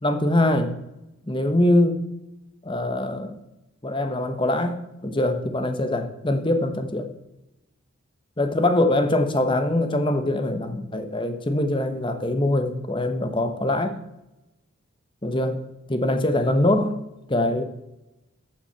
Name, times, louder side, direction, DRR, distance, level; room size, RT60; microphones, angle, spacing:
voice 1, 0.0-0.7 1.3-2.0 2.6-3.4 3.8-7.1 8.4-14.0 15.2-15.6 15.9-17.0 17.3-17.6, left 1 dB, 25° left, 7 dB, 1.0 m, -23 dB
14.0 x 5.9 x 5.7 m, 0.95 s
head